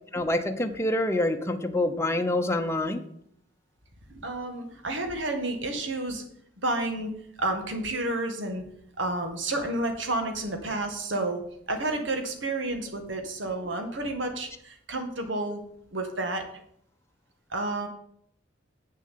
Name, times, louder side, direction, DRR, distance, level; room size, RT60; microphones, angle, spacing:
voice 1, 0.1-3.0, left 1 dB, 15° left, 5 dB, 0.9 m, -26 dB
voice 2, 4.1-6.2 6.6-7.1 7.4-8.6 9.0-11.4 11.7-15.6 15.9-16.4 17.5-17.9, right 2 dB, 75° right, 6 dB, 2.0 m, -30 dB
8.5 x 7.0 x 7.6 m, 0.69 s
head